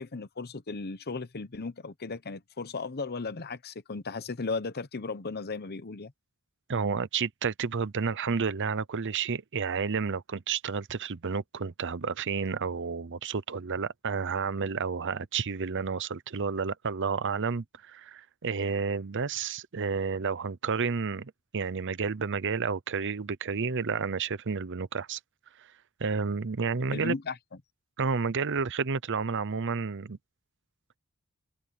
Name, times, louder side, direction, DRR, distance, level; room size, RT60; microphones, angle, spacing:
voice 1, 0.0-6.1 26.9-27.4, left 4 dB, 45° left, 0.9 m, -36 dB
voice 2, 6.7-25.2 26.0-27.1 28.0-30.2, right 5 dB, 55° right, 0.7 m, -31 dB
head